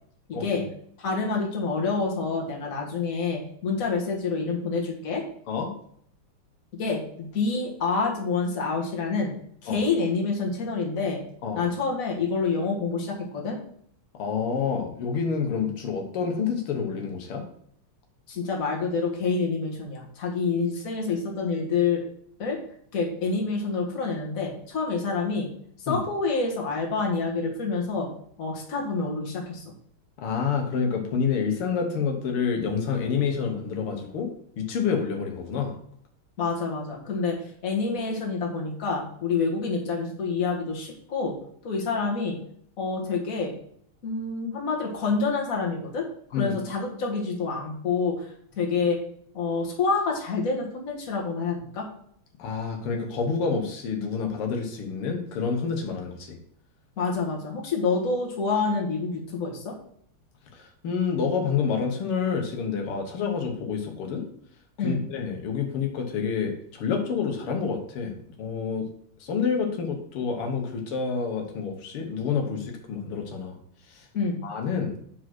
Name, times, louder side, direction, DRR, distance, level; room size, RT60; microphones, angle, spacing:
voice 1, 0.3-0.6 1.0-5.2 6.8-9.3 9.6-11.2 11.5-13.6 18.3-22.0 22.4-22.6 22.9-25.5 25.8-28.1 28.4-29.6 36.4-41.4 41.6-42.4 42.8-43.5 44.0-46.1 46.4-49.0 49.3-51.9 57.0-59.7 64.8-65.0 74.1-74.4, left 4 dB, 40° left, -1 dB, 1.8 m, -27 dB
voice 2, 14.1-17.4 25.9-26.0 30.2-34.3 34.6-35.8 46.3-46.6 52.4-56.4 60.5-64.3 64.8-68.1 68.4-68.9 69.2-73.6 73.9-74.1 74.4-75.0, left 6 dB, 90° left, 3 dB, 2.0 m, -28 dB
5.0 x 4.9 x 6.0 m, 0.65 s
omnidirectional pair, 2.3 m